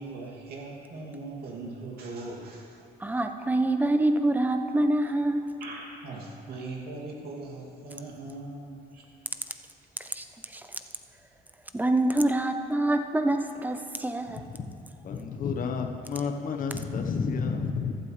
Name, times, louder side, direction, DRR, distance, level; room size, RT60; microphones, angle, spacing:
voice 1, 0.0-2.8 5.6-9.0, right 2 dB, 65° right, -2 dB, 2.6 m, -40 dB
voice 2, 3.0-5.5 10.0-10.2 10.5-10.6 11.7-14.4, right 1 dB, 10° right, 7 dB, 0.7 m, -26 dB
voice 3, 14.3-14.7 15.0-18.0, left 5 dB, 55° left, 5 dB, 1.2 m, -31 dB
15.0 x 12.0 x 3.3 m, 2.5 s
cardioid pair, 110°, 17 cm